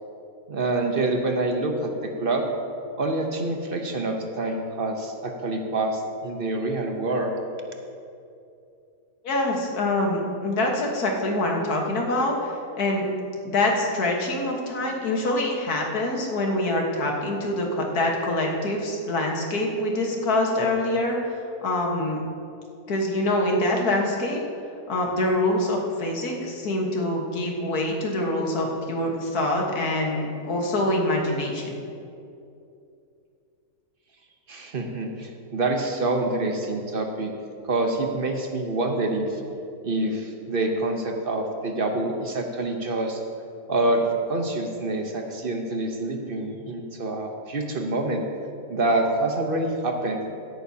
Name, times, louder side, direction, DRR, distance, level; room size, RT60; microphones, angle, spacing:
voice 1, 0.5-2.4 3.0-7.3 34.5-37.3 37.7-39.4 39.8-43.2 43.7-48.2 48.7-50.2, right 2 dB, 45° right, 3 dB, 1.0 m, -26 dB
voice 2, 9.2-13.1 13.5-22.2 22.9-24.4 24.9-31.7, left 1 dB, 85° left, 0 dB, 1.9 m, -25 dB
15.5 x 11.0 x 2.8 m, 2.6 s
omnidirectional pair, 1.6 m